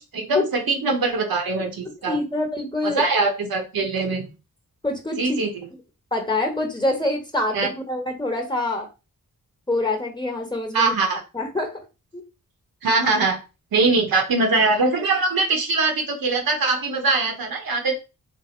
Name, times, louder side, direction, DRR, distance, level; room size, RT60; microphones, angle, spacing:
voice 1, 0.0-2.2 2.8-4.3 5.2-5.5 7.5-7.7 10.7-11.2 12.8-13.4 13.7-18.0, right 3 dB, 80° right, 4 dB, 1.1 m, -22 dB
voice 2, 1.8-3.0 4.8-5.4 6.1-8.9 9.7-11.0 11.3-11.8 12.1-12.2, left 2 dB, 10° left, 4 dB, 1.2 m, -25 dB
3.4 x 2.2 x 4.4 m, 0.29 s
cardioid pair, 70°, 35 cm